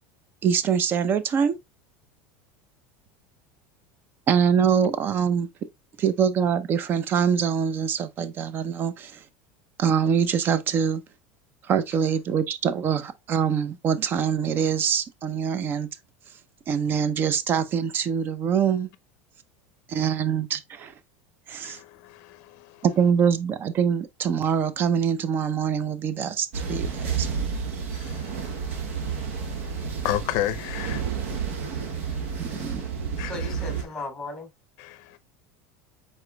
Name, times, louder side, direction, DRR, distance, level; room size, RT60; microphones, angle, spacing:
voice 1, 0.4-1.6 4.3-5.5 6.0-9.2 9.8-11.0 11.7-15.9 16.7-18.9 19.9-20.9 21.5-21.8 22.8-27.3 32.4-32.8, right 7 dB, 30° right, 0.5 m, -24 dB
voice 2, 21.6-22.8 27.9-32.9 33.2-33.3 34.8-35.2, left 15 dB, 60° left, 0.5 m, -35 dB
sound 1, 26.5-33.8, right 6 dB, 90° right, 1.1 m, -30 dB
voice 3, 33.2-34.5, left 2 dB, 5° left, 1.7 m, -36 dB
4.8 x 4.2 x 2.2 m
supercardioid pair, 145°, 7 cm